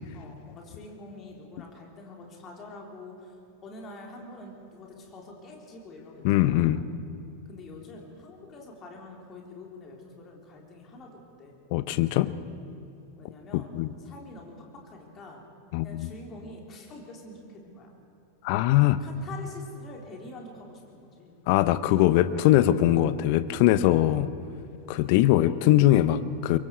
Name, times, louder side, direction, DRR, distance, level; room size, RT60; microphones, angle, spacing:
voice 1, 0.1-3.3 3.6-6.8 7.4-11.6 13.2-13.7 14.0-14.5 14.8-15.5 15.8-17.9 19.0-21.4 24.9-25.3, left 2 dB, 30° left, 0 dB, 3.9 m, -46 dB
voice 2, 6.2-6.8 11.7-12.3 13.5-13.9 15.7-16.1 18.4-19.0 21.5-24.3 24.9-26.6, left 14 dB, 45° left, 14 dB, 0.8 m, -22 dB
23.5 x 23.0 x 4.8 m, 2.7 s
figure-of-eight pair, 90°, 0 cm